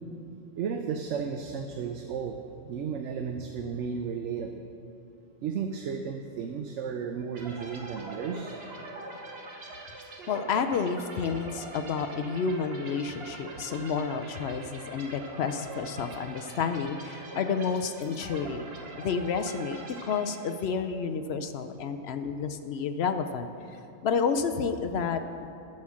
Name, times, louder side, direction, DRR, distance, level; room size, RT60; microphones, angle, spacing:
voice 1, 0.6-2.4 2.6-4.7 5.4-8.5, right 6 dB, 70° right, 5 dB, 0.9 m, -33 dB
sound 1, 7.3-20.9, right 2 dB, 50° right, 1.3 m, -43 dB
voice 2, 10.3-23.5 24.0-25.5, left 5 dB, 65° left, 8 dB, 0.7 m, -30 dB
10.5 x 7.1 x 6.2 m, 2.8 s
omnidirectional pair, 1.3 m